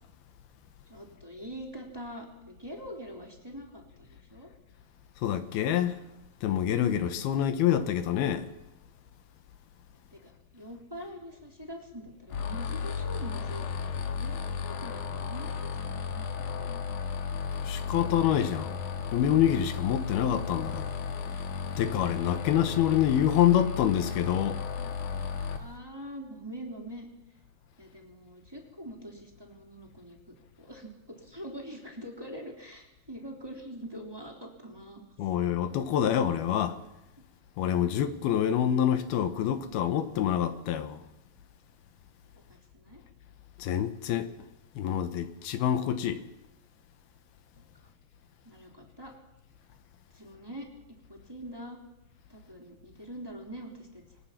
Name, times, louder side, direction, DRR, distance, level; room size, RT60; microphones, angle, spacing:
voice 1, 0.9-4.5 10.1-13.7 14.2-16.7 25.5-27.1 27.8-35.0 42.5-43.0 47.5-47.9 48.4-49.1 50.1-50.7 51.1-51.8 52.3-54.2, equal, 5° right, 2.9 m, -44 dB
voice 2, 5.2-6.0 6.4-8.5 17.6-18.8 19.1-20.9 21.8-24.6 35.2-36.8 37.6-41.1 43.6-44.3 44.8-46.2, left 10 dB, 75° left, 2.9 m, -26 dB
sound 1, 12.3-25.6, left 6 dB, 55° left, 2.8 m, -34 dB
25.5 x 19.5 x 5.9 m
omnidirectional pair, 4.7 m